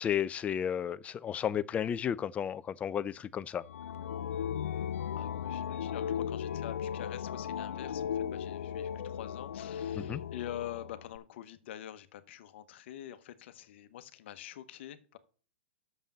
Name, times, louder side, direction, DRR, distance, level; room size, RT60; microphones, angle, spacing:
voice 1, 0.0-3.6 10.0-10.2, left 9 dB, 20° left, 0.4 m, -33 dB
sound 1, 3.6-11.2, left 8 dB, 85° left, 0.5 m, -36 dB
voice 2, 5.1-15.2, left 12 dB, 60° left, 1.0 m, -45 dB
6.7 x 5.4 x 7.3 m
hypercardioid pair, 130°, 7 cm